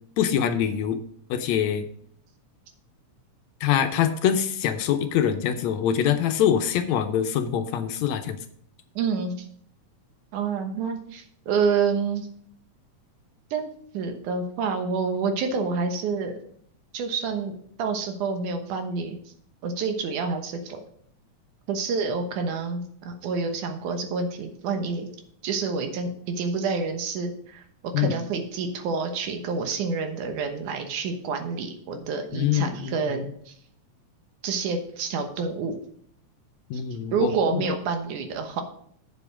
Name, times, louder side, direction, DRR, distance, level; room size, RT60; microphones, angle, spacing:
voice 1, 0.2-1.0 1.3-1.9 3.6-8.4 27.9-28.2 32.3-33.3 36.7-37.6, left 9 dB, 75° left, 8 dB, 1.9 m, -24 dB
voice 2, 9.0-9.5 10.3-12.3 13.5-16.4 16.9-19.2 19.6-20.8 21.7-25.1 25.4-27.6 28.0-33.5 34.4-35.8 37.1-38.6, right 5 dB, 90° right, 5 dB, 2.7 m, -28 dB
7.9 x 7.2 x 4.9 m, 0.62 s
omnidirectional pair, 3.4 m